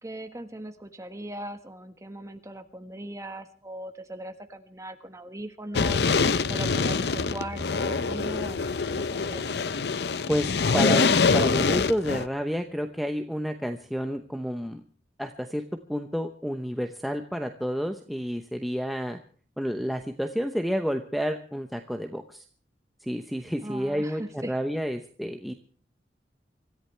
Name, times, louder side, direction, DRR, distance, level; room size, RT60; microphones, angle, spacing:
voice 1, 0.0-6.0 6.5-9.5 23.6-24.5, right 1 dB, 20° right, 7 dB, 1.5 m, -39 dB
sound 1, 5.7-12.3, left 4 dB, 65° left, 0.6 m, -25 dB
sound 2, 6.3-13.1 13.4-13.9 14.2-14.3, equal, 75° right, 2.9 m, -46 dB
voice 2, 10.7-14.8 15.2-15.6 15.9-19.2 19.6-22.4 23.0-25.5, equal, ahead, 4 dB, 0.8 m, -30 dB
25.5 x 14.0 x 3.3 m, 0.43 s
head